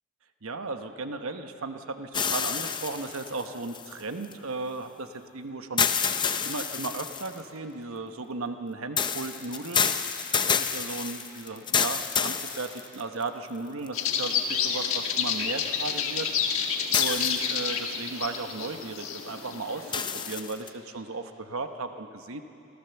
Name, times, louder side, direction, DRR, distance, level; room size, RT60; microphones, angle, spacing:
voice 1, 0.4-5.9 6.4-22.4, right 3 dB, 70° right, 7 dB, 1.0 m, -36 dB
sound 1, 2.1-4.3 5.8-7.4 9.0-13.2 13.9-14.0 16.9-17.8 19.9-20.7, left 6 dB, 20° left, 0.6 m, -28 dB
sound 2, 13.9-20.3, left 7 dB, 70° left, 1.5 m, -29 dB
26.0 x 14.0 x 7.0 m, 2.8 s
head